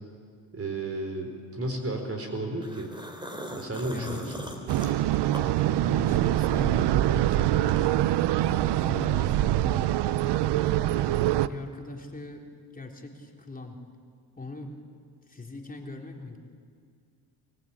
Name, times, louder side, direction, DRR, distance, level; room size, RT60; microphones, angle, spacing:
voice 1, 0.5-2.9 3.5-4.3, right 2 dB, 35° right, 4 dB, 4.6 m, -33 dB
sound 1, 2.6-6.2 6.5-8.0, equal, 10° right, 3.9 m, -40 dB
voice 2, 3.9-4.3 5.8-7.8 8.4-10.0 11.5-12.4 12.7-13.8 14.4-14.7 15.3-16.4, left 2 dB, 20° left, 1 dB, 3.6 m, -40 dB
sound 2, 4.7-11.5, right 13 dB, 75° right, 0.8 m, -24 dB
24.0 x 20.0 x 8.9 m, 2.1 s
cardioid pair, 85°, 41 cm